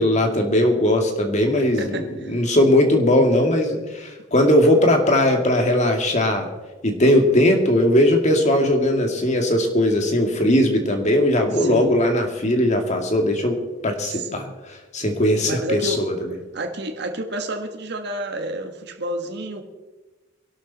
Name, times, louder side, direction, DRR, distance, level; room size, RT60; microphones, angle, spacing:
voice 1, 0.0-6.5 6.8-13.6 13.8-16.1, left 1 dB, 40° left, 3 dB, 2.4 m, -19 dB
voice 2, 1.8-2.4 11.5-12.1 14.1-14.5 15.4-16.0 16.5-19.6, right 1 dB, 65° right, 4 dB, 1.6 m, -30 dB
23.0 x 12.0 x 4.2 m, 1.2 s
head